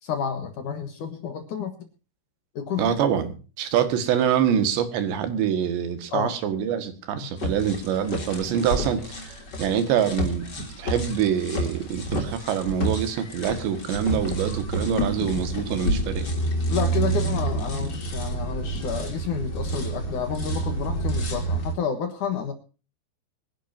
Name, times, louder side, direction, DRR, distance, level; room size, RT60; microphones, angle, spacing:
voice 1, 0.0-1.9 2.6-2.9 6.1-6.3 7.1-7.3 14.8-14.9 15.2-15.3 16.7-22.5, left 7 dB, 60° left, 8 dB, 2.4 m, -30 dB
voice 2, 2.8-3.3 3.6-10.5 10.8-16.3, right 8 dB, 80° right, 10 dB, 4.0 m, -25 dB
sound 1, 7.4-21.7, right 2 dB, 30° left, 2.9 m, -29 dB
24.5 x 11.0 x 2.7 m, 0.34 s
omnidirectional pair, 5.0 m